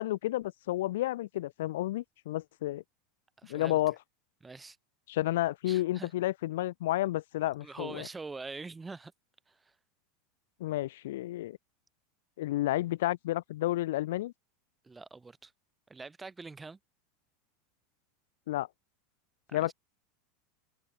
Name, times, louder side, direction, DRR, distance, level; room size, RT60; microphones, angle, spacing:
voice 1, 0.0-2.8 3.5-4.0 5.1-8.1 10.6-11.6 12.4-14.3 18.5-18.7 19.5-19.7, left 15 dB, 85° left, 0.4 m, -31 dB
voice 2, 3.4-3.8 4.4-4.8 5.7-6.1 7.6-9.1 9.5-9.7 14.8-15.5 15.9-16.8 19.5-19.7, right 3 dB, 10° right, 4.1 m, -44 dB
open air
supercardioid pair, 160°, 0 cm